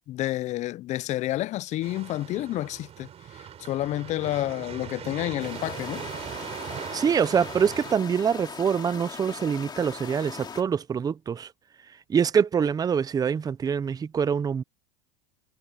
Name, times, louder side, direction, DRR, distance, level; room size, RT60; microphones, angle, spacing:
voice 1, 0.1-3.1 3.3-6.0, left 15 dB, 40° left, 0.6 m, -30 dB
sound 1, 1.8-8.0, right 10 dB, 35° right, 5.0 m, -40 dB
sound 2, 5.4-10.6, left 6 dB, 25° left, 2.7 m, -40 dB
voice 2, 6.9-11.5 12.1-14.6, right 7 dB, 20° right, 0.7 m, -25 dB
supercardioid pair, 115°, 18 cm